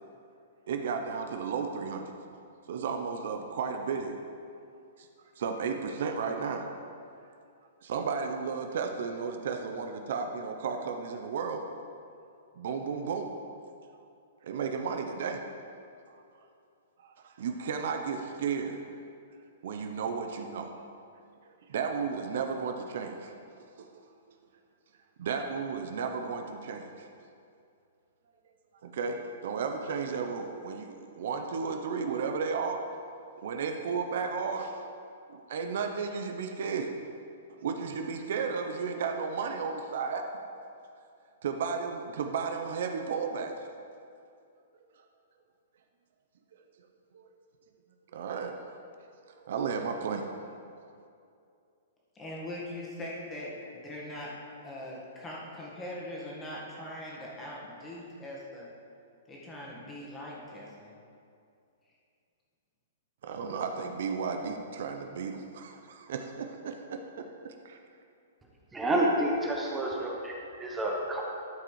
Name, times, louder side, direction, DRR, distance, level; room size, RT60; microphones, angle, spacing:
voice 1, 0.7-2.1 2.7-4.2 5.0-5.1 5.4-6.7 7.8-11.6 12.6-13.3 14.4-15.4 16.1-16.2 17.0-18.8 19.6-20.7 21.7-23.3 23.8-23.9 25.2-27.1 28.8-32.9 33.4-34.9 35.3-36.9 37.6-40.3 41.4-43.5 47.1-47.2 48.1-48.6 49.3-50.3 63.2-67.8, right 5 dB, 65° right, 5 dB, 0.8 m, -33 dB
voice 2, 52.1-54.3 54.6-58.7 59.3-60.9, left 1 dB, 15° left, -4 dB, 1.7 m, -41 dB
voice 3, 68.7-71.2, right 1 dB, 10° right, -2 dB, 1.0 m, -29 dB
12.5 x 5.0 x 4.9 m, 2.5 s
hypercardioid pair, 155°, 0 cm